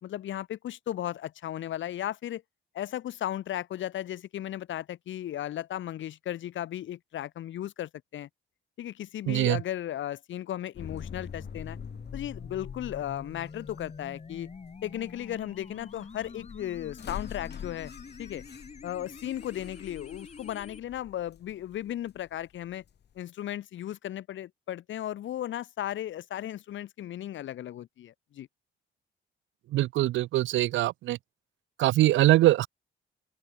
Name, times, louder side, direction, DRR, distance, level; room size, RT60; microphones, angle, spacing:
voice 1, 0.0-2.4 2.7-8.3 8.8-11.8 12.1-14.5 14.8-17.9 18.2-18.4 18.8-22.8 23.2-28.5, left 12 dB, 70° left, 2.5 m, -36 dB
voice 2, 9.3-9.6 29.7-31.2 31.8-32.7, right 15 dB, 75° right, 0.5 m, -23 dB
sound 1, 10.7-23.2, left 8 dB, 55° left, 5.9 m, -46 dB
sound 2, 10.8-20.8, left 5 dB, 35° left, 7.7 m, -45 dB
open air
cardioid pair, 90°, 20 cm